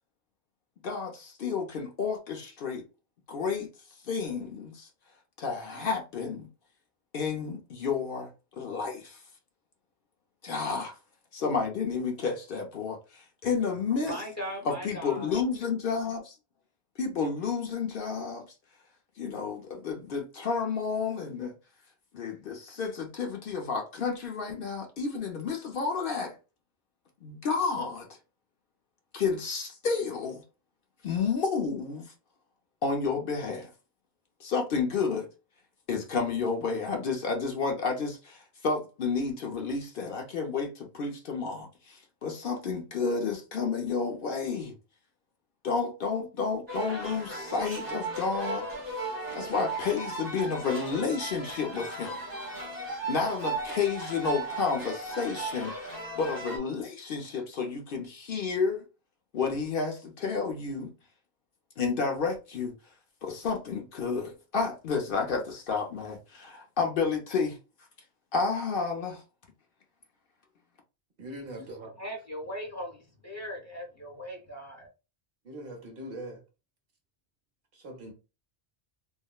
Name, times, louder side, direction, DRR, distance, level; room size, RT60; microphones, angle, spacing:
voice 1, 0.8-2.8 3.3-3.7 4.1-4.9 5.4-6.5 7.1-8.3 8.6-9.2 10.4-10.9 11.3-14.1 14.6-16.3 17.0-18.5 19.2-21.5 22.1-26.4 27.2-28.1 29.1-30.4 31.0-32.1 32.8-33.7 34.4-35.3 35.9-44.8 45.6-48.7 49.3-52.2 53.1-55.9 56.2-58.8 59.3-60.9 61.8-62.7 63.2-67.6 68.3-69.2, left 5 dB, 60° left, 0.8 m, -31 dB
voice 2, 14.0-15.4 71.6-71.7 72.0-74.9, equal, 15° left, 0.9 m, -38 dB
sound 1, 46.7-56.6, right 2 dB, 20° right, 1.0 m, -36 dB
voice 3, 71.2-71.9 75.4-76.4 77.7-78.1, right 1 dB, 65° right, 1.0 m, -41 dB
3.5 x 2.1 x 2.3 m
omnidirectional pair, 1.1 m